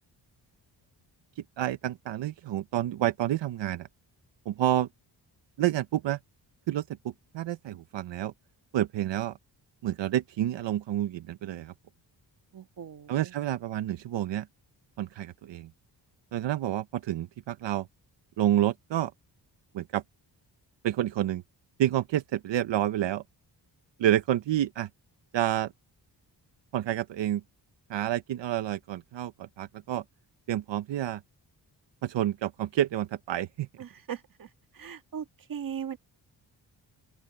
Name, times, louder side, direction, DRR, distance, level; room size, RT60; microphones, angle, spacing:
voice 1, 1.6-3.9 4.5-4.9 5.6-6.2 6.7-6.8 7.3-8.3 8.7-9.3 9.8-11.7 13.1-14.5 15.0-15.7 16.3-17.9 18.4-19.1 19.7-20.0 20.8-21.4 21.8-23.2 24.0-24.9 25.3-25.7 26.7-27.4 27.9-30.0 30.5-31.2 32.0-33.7, right 12 dB, 85° right, 0.8 m, -29 dB
voice 2, 12.5-13.3 33.8-36.0, right 8 dB, 50° right, 1.8 m, -39 dB
open air
wide cardioid pair, 140°, 43 cm